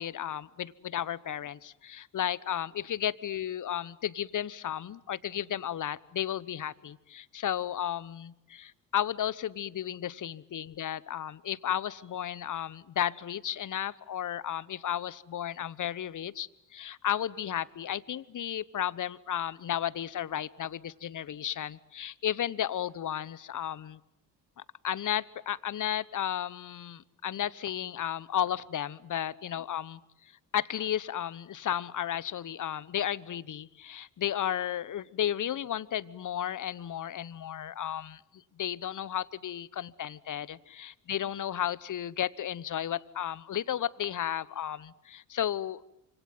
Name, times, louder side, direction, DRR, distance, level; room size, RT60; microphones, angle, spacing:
voice 1, 0.0-24.0 24.6-45.8, left 10 dB, 40° left, 20 dB, 1.1 m, -33 dB
28.0 x 26.5 x 7.7 m, 0.83 s
hypercardioid pair, 45°, 48 cm